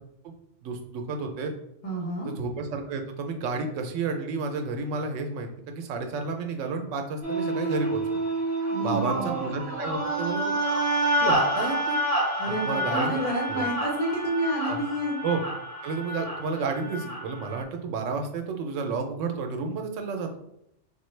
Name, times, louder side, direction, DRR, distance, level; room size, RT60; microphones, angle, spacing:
voice 1, 0.6-1.5 2.2-8.0 8.8-10.5 11.2-12.0 12.5-13.2 13.5-13.6 14.7-14.8 15.2-15.4 15.8-20.4, right 4 dB, 80° right, 5 dB, 0.9 m, -31 dB
voice 2, 1.8-2.3 8.7-9.3 12.4-15.2, right 1 dB, 30° left, -3 dB, 0.9 m, -29 dB
sound 1, 7.2-17.6, right 1 dB, 15° right, 1.0 m, -28 dB
3.8 x 2.2 x 3.1 m, 0.79 s
omnidirectional pair, 1.3 m